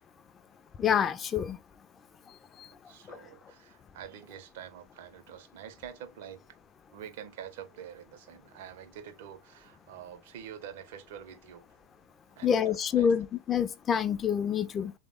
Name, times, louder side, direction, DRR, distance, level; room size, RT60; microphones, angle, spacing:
voice 1, 0.8-1.6 2.6-2.7 3.1-3.2 12.4-14.9, left 8 dB, 25° left, 0.3 m, -27 dB
voice 2, 2.9-6.4 6.9-11.7 12.4-13.2, right 9 dB, 50° right, 0.4 m, -46 dB
3.3 x 2.0 x 3.4 m
figure-of-eight pair, 90°, 0 cm